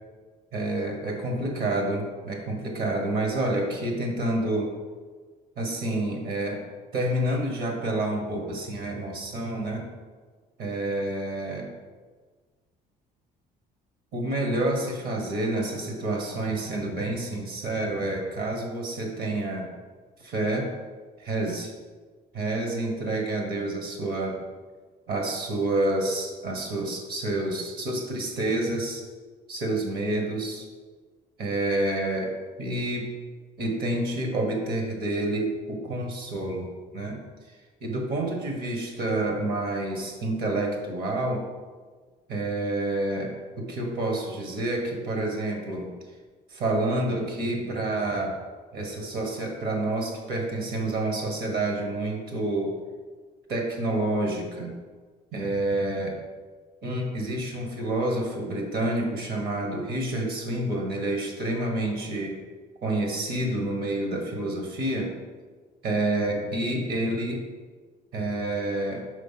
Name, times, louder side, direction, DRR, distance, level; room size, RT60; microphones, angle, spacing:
voice 1, 0.5-4.7 5.6-6.6 6.9-9.9 10.6-11.7 14.1-19.7 20.2-20.7 21.2-21.7 22.3-24.4 25.1-29.0 29.5-30.7 31.4-32.3 32.6-33.1 33.6-37.2 37.8-41.5 42.3-45.9 46.5-48.4 48.7-52.8 53.5-54.7 55.3-56.2 56.8-62.4 62.8-65.1 65.8-67.5 68.1-69.0, right 1 dB, 65° right, 2 dB, 1.4 m, -28 dB
5.2 x 4.0 x 5.7 m, 1.4 s
cardioid pair, 110°, 17 cm